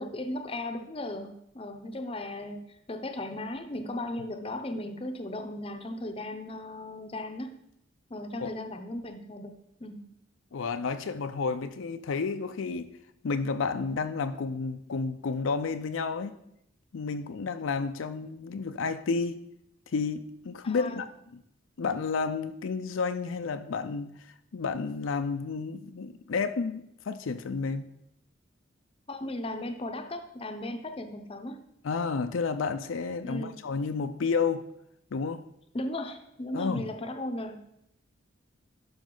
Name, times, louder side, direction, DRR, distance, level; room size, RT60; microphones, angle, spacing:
voice 1, 0.0-7.5 8.1-10.0 20.6-21.0 29.1-31.6 33.2-33.5 35.7-37.6, left 1 dB, 30° left, 7 dB, 0.6 m, -36 dB
voice 2, 10.5-12.9 13.2-16.4 16.9-19.4 19.9-21.1 21.3-21.4 21.8-24.1 24.5-27.9 31.8-34.6 35.1-35.4 36.5-36.9, left 4 dB, 75° left, 9 dB, 0.5 m, -31 dB
12.0 x 5.2 x 3.8 m, 0.77 s
head